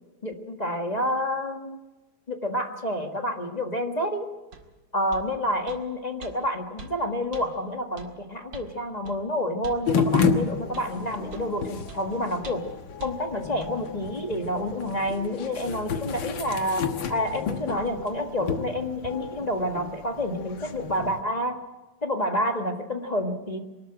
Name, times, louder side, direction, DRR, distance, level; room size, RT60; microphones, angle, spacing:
voice 1, 0.2-1.8 2.3-4.3 4.9-12.6 13.0-21.6 22.0-23.6, left 1 dB, 20° left, 4 dB, 1.5 m, -29 dB
sound 1, 4.5-4.7 5.1-5.3 5.7-5.8 6.2-6.3 6.8-6.9 7.3-7.5 8.0-8.1 8.5-8.7 9.0-9.2 9.6-9.8 10.2-10.3 10.7-10.9 11.3-11.5 11.9-12.0 12.4-12.7 13.0-13.1 13.6-13.7, right 3 dB, 70° right, 2.7 m, -43 dB
sound 2, 9.9-21.2, left 6 dB, 80° left, 2.1 m, -31 dB
23.5 x 13.0 x 8.8 m, 1.1 s
omnidirectional pair, 2.1 m